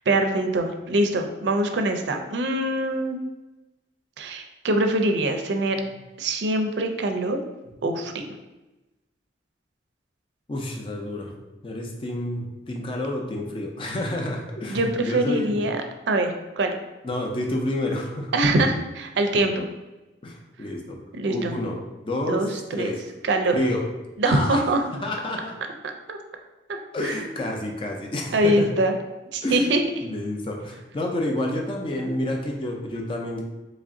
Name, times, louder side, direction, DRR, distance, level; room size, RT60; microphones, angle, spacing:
voice 1, 0.1-3.2 4.2-5.8 6.2-7.4 7.8-8.1 14.7-16.7 18.3-19.7 21.2-21.5 22.3-22.9 23.3-23.6 24.2-24.8 26.1-26.2 27.0-27.3 28.3-28.9 29.3-29.8, right 1 dB, 80° right, 5 dB, 0.4 m, -23 dB
voice 2, 10.5-15.6 17.0-18.3 20.2-21.0 21.3-23.0 23.5-23.8 24.2-24.6 24.9-25.5 26.9-28.7 29.4-29.7 30.0-33.4, left 1 dB, 30° left, 1 dB, 0.4 m, -29 dB
3.1 x 2.5 x 3.7 m, 1.0 s
head